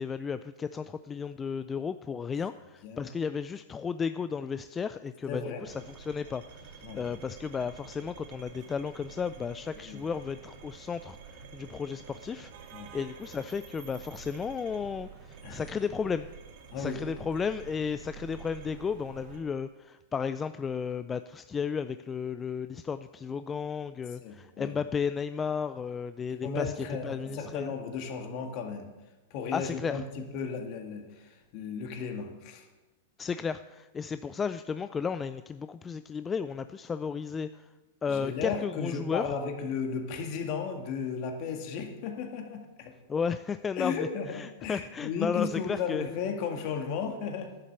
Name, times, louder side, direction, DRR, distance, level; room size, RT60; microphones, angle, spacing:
voice 1, 0.0-12.5 12.9-16.3 16.7-27.7 29.5-30.0 33.2-37.7 38.0-39.3 43.1-46.1, left 6 dB, 20° left, 12 dB, 0.3 m, -34 dB
voice 2, 5.3-5.7 6.8-7.0 9.8-10.0 12.7-12.9 15.4-15.7 16.7-17.0 24.2-24.8 26.4-28.9 29.3-32.7 38.1-42.9 43.8-47.5, left 6 dB, 50° left, 4 dB, 2.0 m, -35 dB
sound 1, 5.6-19.4, right 7 dB, 55° right, 2.0 m, -48 dB
11.0 x 7.4 x 6.9 m, 1.1 s
hypercardioid pair, 125°, 0 cm